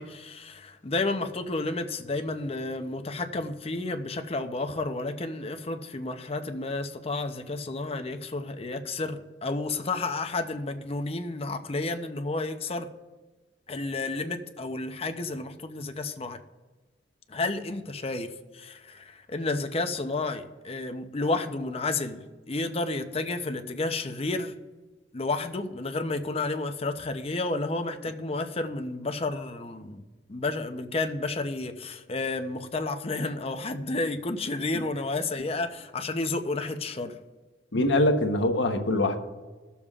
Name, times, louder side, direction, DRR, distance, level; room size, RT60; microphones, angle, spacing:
voice 1, 0.0-12.9 13.7-16.4 17.3-24.5 25.1-30.0 30.3-37.2, left 2 dB, 35° left, 0.7 m, -31 dB
voice 2, 37.7-39.2, left 1 dB, 85° left, 1.0 m, -23 dB
20.5 x 7.0 x 2.4 m
head